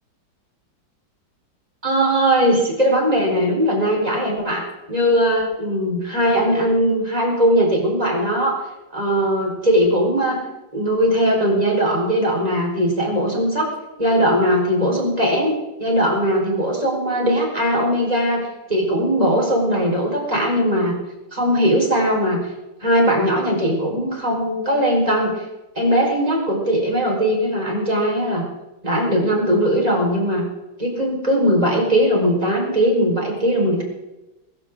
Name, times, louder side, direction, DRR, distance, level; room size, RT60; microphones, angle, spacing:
voice 1, 1.8-8.6 8.9-10.4 10.7-13.7 14.0-21.0 21.3-22.4 22.8-25.4 25.7-28.4 28.8-30.4 30.8-33.8, equal, 20° right, -1 dB, 4.8 m, -19 dB
23.0 x 14.5 x 3.8 m, 1.0 s
omnidirectional pair, 2.1 m